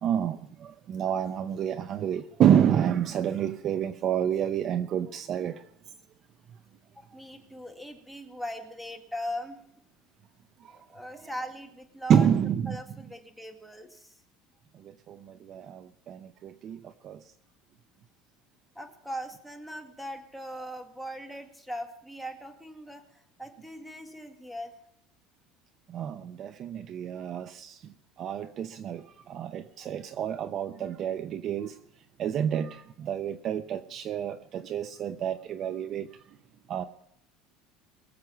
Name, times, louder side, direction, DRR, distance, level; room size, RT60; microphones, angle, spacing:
voice 1, 0.0-5.6 10.6-10.8 12.1-12.8 14.7-17.2 25.9-31.8 32.2-36.1 36.7-36.8, right 9 dB, 45° right, 11 dB, 0.7 m, -29 dB
voice 2, 6.9-9.6 10.7-12.3 12.7-14.2 18.8-24.7, equal, ahead, 5 dB, 2.0 m, -40 dB
22.5 x 7.6 x 5.7 m, 0.72 s
supercardioid pair, 130°, 0 cm